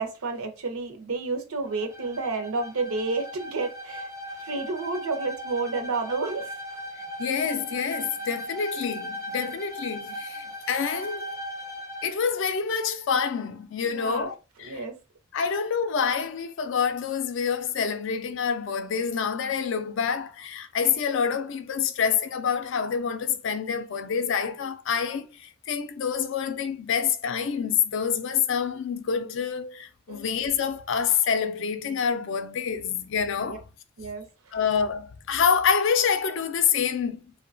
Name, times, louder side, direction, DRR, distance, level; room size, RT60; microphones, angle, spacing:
voice 1, 0.0-4.1 4.4-6.5 13.8-14.3 14.6-14.9 30.1-30.2 33.4-33.6 34.0-34.2, right 3 dB, 85° right, 0.6 m, -30 dB
Bowed string instrument, 1.7-12.2, equal, 15° right, 0.4 m, -38 dB
voice 2, 7.2-11.3 12.0-14.8 15.3-33.6 34.5-37.3, left 6 dB, 60° left, 0.4 m, -27 dB
3.0 x 2.2 x 2.4 m
head